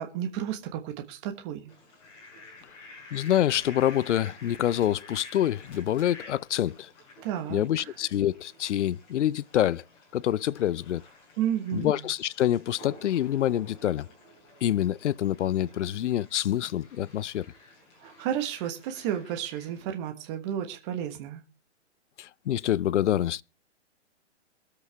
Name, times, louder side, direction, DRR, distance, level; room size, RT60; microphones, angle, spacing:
voice 1, 0.0-1.7 7.2-7.6 11.4-12.1 18.0-21.4, right 10 dB, 25° right, 1.3 m, -32 dB
Fowl, 1.7-19.8, left 2 dB, 25° left, 5.7 m, -51 dB
voice 2, 3.1-6.9 7.5-9.8 10.1-11.0 11.7-14.1 14.6-17.5 22.2-23.4, left 11 dB, 75° left, 0.5 m, -26 dB
22.0 x 8.2 x 3.4 m
hypercardioid pair, 160°, 36 cm